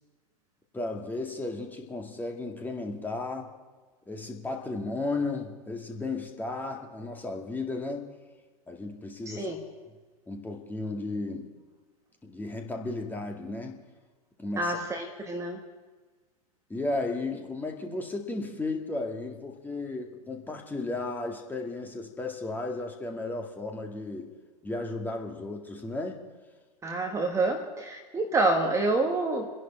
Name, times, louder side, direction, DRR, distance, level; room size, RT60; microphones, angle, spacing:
voice 1, 0.7-3.5 4.1-8.1 8.7-9.6 10.3-11.5 12.2-13.8 14.4-14.8 16.7-24.3 24.6-26.2, left 2 dB, 10° left, 2 dB, 2.0 m, -34 dB
voice 2, 9.3-9.6 14.6-15.6 26.8-29.5, right 2 dB, 15° right, 3 dB, 1.5 m, -27 dB
28.5 x 11.0 x 4.5 m, 1.4 s
figure-of-eight pair, 95°, 20 cm